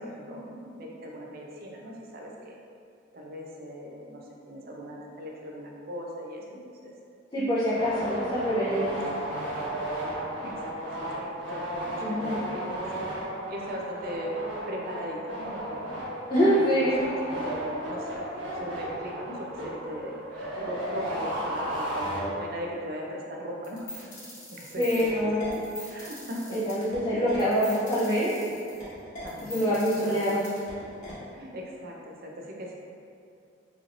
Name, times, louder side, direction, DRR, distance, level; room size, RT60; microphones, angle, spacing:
voice 1, 0.0-2.6 3.1-6.9 7.7-8.1 9.1-9.2 10.4-10.7 11.1-13.0 13.5-14.3 14.7-16.0 16.4-16.9 17.2-24.1 24.5-25.1 25.9-26.6 27.1-27.3 29.2-30.4 31.4-32.7, equal, 50° right, -1 dB, 0.5 m, -39 dB
voice 2, 7.3-8.9 12.0-12.4 16.3-17.0 24.8-25.5 26.5-28.3 29.4-30.5, equal, 25° left, -11 dB, 0.6 m, -25 dB
sound 1, 7.7-22.7, right 1 dB, 80° right, 1.2 m, -34 dB
sound 2, 23.6-31.1, left 1 dB, 40° left, 1.1 m, -42 dB
4.2 x 3.1 x 2.5 m, 2.5 s
head